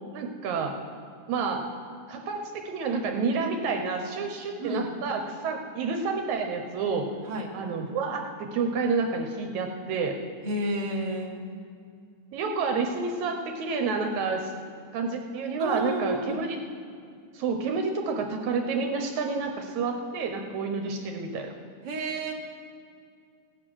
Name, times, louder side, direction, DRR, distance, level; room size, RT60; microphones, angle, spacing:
voice 1, 0.1-0.7 1.3-1.6 2.1-7.1 7.5-10.2 12.3-14.5 14.9-16.6 17.3-21.5, right 4 dB, 75° right, 4 dB, 2.1 m, -29 dB
voice 2, 4.6-4.9 7.3-7.5 10.4-11.4 15.6-16.4 21.8-22.3, right 1 dB, 45° right, -1 dB, 0.5 m, -31 dB
17.5 x 8.2 x 6.2 m, 2.4 s
omnidirectional pair, 3.4 m